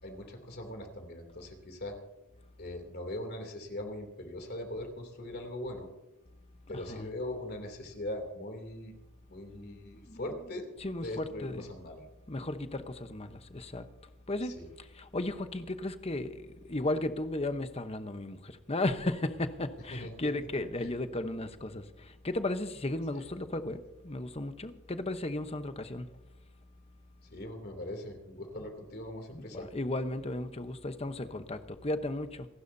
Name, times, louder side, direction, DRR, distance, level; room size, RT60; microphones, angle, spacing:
voice 1, 0.0-2.0 2.6-5.9 6.7-8.9 9.3-10.7 11.0-12.0 14.4-14.7 19.9-20.1 20.5-20.9 23.1-23.2 27.2-29.7, left 1 dB, 45° left, 2.9 m, -41 dB
voice 2, 6.7-7.1 9.9-11.7 12.3-13.9 14.3-26.1 29.3-32.5, left 2 dB, 25° left, 0.9 m, -35 dB
27.5 x 12.0 x 2.7 m
head